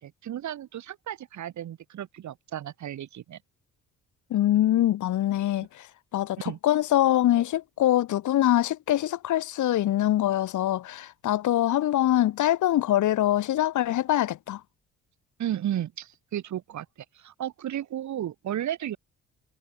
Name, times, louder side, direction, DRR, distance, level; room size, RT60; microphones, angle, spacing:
voice 1, 0.0-3.4 6.4-6.6 15.4-16.9 17.1-19.0, right 11 dB, 70° right, 3.9 m, -33 dB
voice 2, 4.3-5.9 6.1-14.6, left 13 dB, 75° left, 2.6 m, -24 dB
cardioid pair, 90°, 30 cm